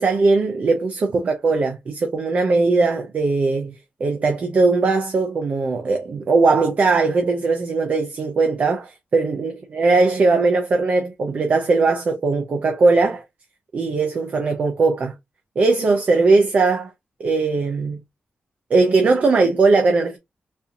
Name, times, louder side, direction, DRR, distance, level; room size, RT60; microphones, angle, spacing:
voice 1, 0.0-3.7 4.0-13.2 13.7-15.1 15.6-16.9 17.2-18.0 18.7-20.2, right 3 dB, 45° right, 0.5 m, -19 dB
4.2 x 2.6 x 2.4 m
wide cardioid pair, 155°, 3 cm